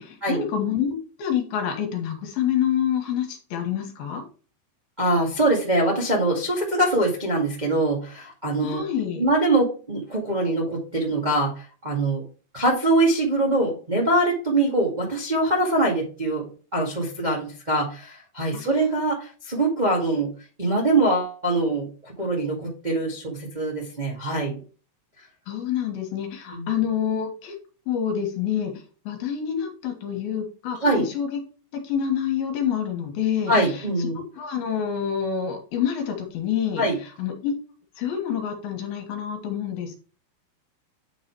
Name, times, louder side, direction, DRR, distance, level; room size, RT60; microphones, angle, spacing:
voice 1, 0.0-4.2 8.6-9.2 18.5-18.7 25.5-27.5 27.9-28.7 29.1-31.4 31.8-33.5 34.2-36.8 37.2-37.5 38.0-39.9, left 8 dB, 70° left, 3 dB, 3.2 m, -27 dB
voice 2, 5.0-8.8 9.2-12.2 12.5-20.3 20.6-24.6 26.5-26.8 30.8-31.0 33.5-34.2 36.8-37.0, right 2 dB, 25° right, -3 dB, 0.9 m, -23 dB
9.5 x 4.0 x 4.6 m, 0.37 s
omnidirectional pair, 4.6 m